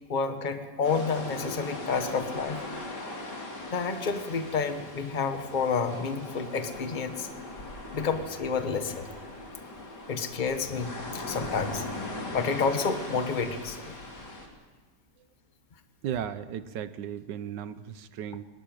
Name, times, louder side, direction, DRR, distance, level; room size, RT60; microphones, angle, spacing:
voice 1, 0.1-2.6 3.7-7.3 7.9-9.1 10.1-11.8 12.3-13.9, left 5 dB, 30° left, 8 dB, 1.3 m, -30 dB
sound 1, 0.8-14.5, left 2 dB, 70° left, 3.5 m, -39 dB
voice 2, 16.0-18.4, right 9 dB, 85° right, 13 dB, 1.5 m, -35 dB
22.0 x 13.0 x 9.1 m, 1.5 s
omnidirectional pair, 1.8 m